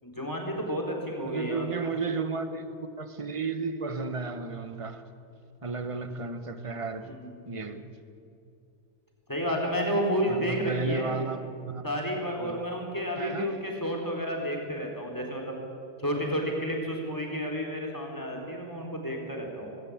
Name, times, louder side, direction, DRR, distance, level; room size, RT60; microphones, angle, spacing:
voice 1, 0.0-1.6 7.0-7.6 9.3-11.2 11.8-15.6 16.0-19.7, equal, 10° left, 3.8 m, -31 dB
voice 2, 1.2-5.0 5.6-7.2 7.5-7.9 10.3-11.8 12.4-12.6 13.2-13.5, right 4 dB, 45° right, 0.4 m, -33 dB
19.0 x 17.5 x 8.6 m
omnidirectional pair, 2.2 m